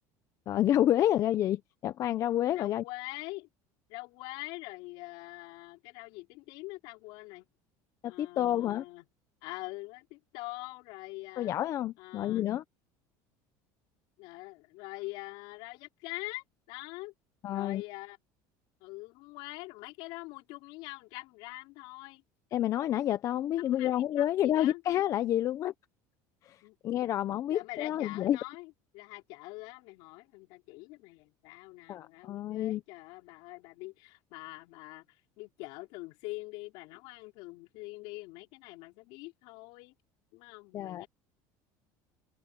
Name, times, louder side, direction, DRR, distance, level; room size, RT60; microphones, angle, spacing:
voice 1, 0.5-2.8 8.0-8.8 11.4-12.6 17.4-17.8 22.5-25.7 26.4-26.6 26.8-28.4 31.9-32.8 40.7-41.0, left 12 dB, 40° left, 0.7 m, -29 dB
voice 2, 2.5-3.5 3.9-7.5 8.0-9.1 9.4-11.5 12.0-12.5 14.2-17.1 17.5-18.2 18.8-22.2 23.6-24.8 26.6-26.8 27.5-35.0 35.4-39.9 40.3-41.1, left 22 dB, 70° left, 4.4 m, -44 dB
open air
cardioid pair, 140°, 8 cm